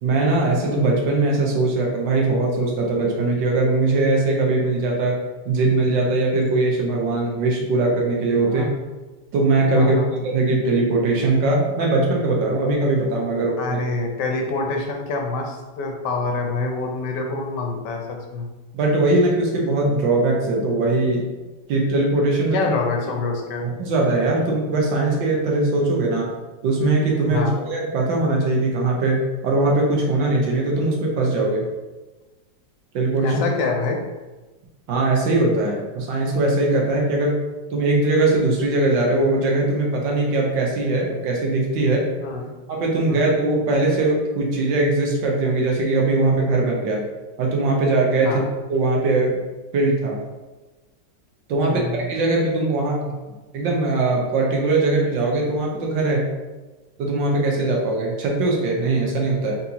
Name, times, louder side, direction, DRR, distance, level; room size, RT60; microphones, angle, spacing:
voice 1, 0.0-5.2 5.4-8.7 9.3-13.8 18.7-21.3 21.7-22.7 23.6-26.3 26.6-31.7 32.9-33.4 34.9-37.4 37.7-42.0 42.7-47.0 47.4-48.4 48.7-49.4 49.7-50.2 51.5-53.1 53.5-56.3 57.0-59.6, right 2 dB, 80° right, -1 dB, 1.6 m, -20 dB
voice 2, 9.7-10.1 13.6-18.5 22.5-23.6 27.3-27.6 33.2-34.0 42.2-42.4 43.1-43.3 48.2-48.4 51.5-52.0, left 3 dB, 70° left, 2 dB, 1.3 m, -26 dB
4.2 x 4.0 x 2.8 m, 1.2 s
omnidirectional pair, 2.0 m